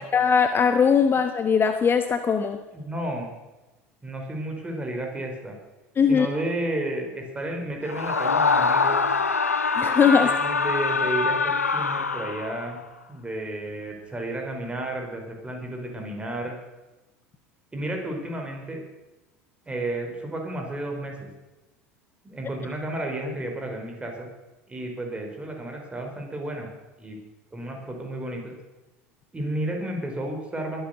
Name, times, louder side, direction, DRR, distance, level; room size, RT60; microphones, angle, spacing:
voice 1, 0.0-2.6 6.0-6.3 9.8-10.3, left 6 dB, 30° left, 8 dB, 1.1 m, -20 dB
voice 2, 2.7-3.3 4.0-5.6 6.1-9.0 10.2-12.8 13.1-16.5 17.7-18.8 19.7-21.3 22.2-24.3 24.7-26.7 27.0-27.2 27.5-28.6 29.3-30.8, right 1 dB, 15° right, 2 dB, 4.8 m, -32 dB
Screaming, 7.9-12.7, left 4 dB, 90° left, 0.7 m, -24 dB
21.5 x 9.1 x 6.8 m, 1.1 s
figure-of-eight pair, 75°, 8 cm